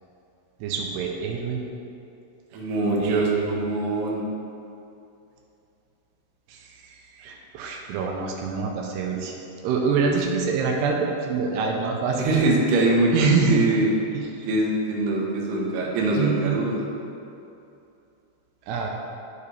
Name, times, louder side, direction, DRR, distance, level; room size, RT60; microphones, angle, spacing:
voice 1, 0.6-1.6 3.0-3.6 6.5-9.3 9.6-12.2 13.1-13.7 14.1-14.5 16.1-16.8 18.7-18.9, right 5 dB, 85° right, 0 dB, 2.7 m, -26 dB
voice 2, 2.5-4.2 12.2-13.9 14.5-16.8, right 2 dB, 70° right, -3 dB, 2.3 m, -23 dB
11.5 x 4.8 x 3.4 m, 2.7 s
omnidirectional pair, 4.8 m